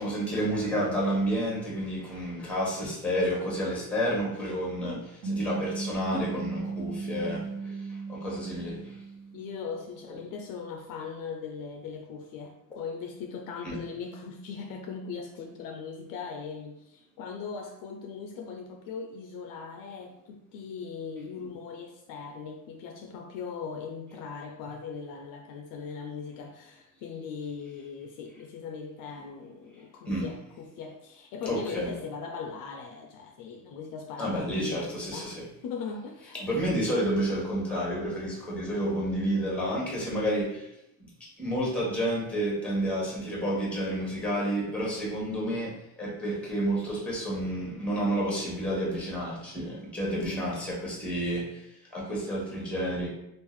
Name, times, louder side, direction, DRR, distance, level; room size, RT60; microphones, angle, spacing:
voice 1, 0.0-5.0 5.3-7.7 8.1-8.9 13.6-13.8 30.0-30.3 31.5-31.9 34.2-35.4 36.4-40.7 41.4-51.6 51.9-53.1, equal, 5° left, -4 dB, 1.1 m, -30 dB
sound 1, 5.2-9.9, right 4 dB, 50° right, 1.4 m, -35 dB
voice 2, 9.3-36.9 50.1-50.5, left 5 dB, 60° left, 3 dB, 0.5 m, -39 dB
3.6 x 2.4 x 3.0 m, 0.84 s
cardioid pair, 150°, 39 cm